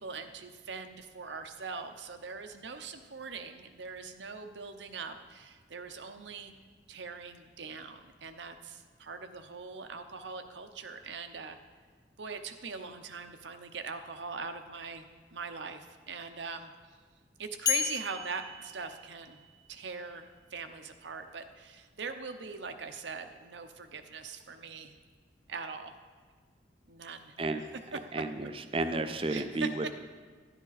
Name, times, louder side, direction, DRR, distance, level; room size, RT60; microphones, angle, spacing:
voice 1, 0.0-6.5 6.9-11.6 12.2-15.1 15.3-16.7 17.4-19.4 19.7-24.9 25.5-25.9 26.9-27.3 29.3-29.7, right 4 dB, 80° right, 8 dB, 0.8 m, -42 dB
sound 1, 17.7-19.7, left 7 dB, 20° left, 0.4 m, -34 dB
voice 2, 28.1-29.9, right 2 dB, 30° right, 8 dB, 0.5 m, -32 dB
11.0 x 10.0 x 4.1 m, 1.5 s
head